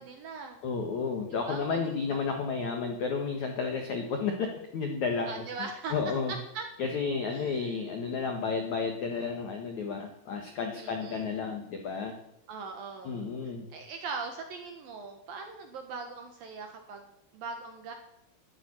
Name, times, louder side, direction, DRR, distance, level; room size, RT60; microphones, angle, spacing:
voice 1, 0.0-0.6 1.4-2.2 5.3-5.9 6.3-6.7 7.3-7.7 10.8-11.4 12.5-13.2 13.7-17.9, right 4 dB, 65° right, 4 dB, 2.5 m, -40 dB
voice 2, 0.6-5.3 5.9-6.3 6.8-12.2 13.0-13.7, left 5 dB, 75° left, 4 dB, 1.7 m, -32 dB
12.5 x 9.4 x 9.9 m, 0.80 s
omnidirectional pair, 5.8 m